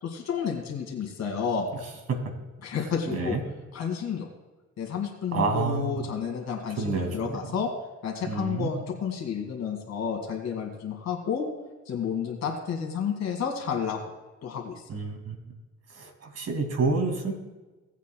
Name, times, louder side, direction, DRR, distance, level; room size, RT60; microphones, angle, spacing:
voice 1, 0.0-1.7 2.6-3.4 3.7-4.3 4.8-7.7 8.0-11.5 11.9-14.0 14.4-14.8, left 7 dB, 60° left, 1 dB, 2.2 m, -31 dB
voice 2, 3.1-3.4 5.3-6.0 6.8-7.5 8.3-8.7 14.9-15.4 15.9-17.3, right 4 dB, 55° right, 4 dB, 2.3 m, -29 dB
18.0 x 8.2 x 2.3 m, 1.2 s
cardioid pair, 90°, 30 cm